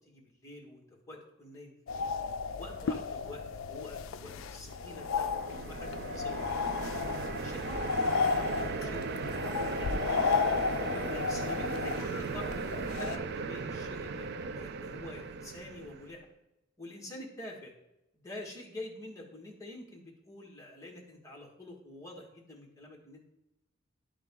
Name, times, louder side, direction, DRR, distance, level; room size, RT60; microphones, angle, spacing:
voice 1, 0.0-2.1 2.6-7.0 7.4-10.3 10.8-16.2 16.8-17.7 18.1-23.3, left 2 dB, 15° left, -3 dB, 1.5 m, -47 dB
sound 1, 1.9-13.2, left 5 dB, 70° left, 0.4 m, -33 dB
sound 2, 4.8-16.2, right 4 dB, 55° right, 0.4 m, -37 dB
11.0 x 3.8 x 3.6 m, 0.89 s
head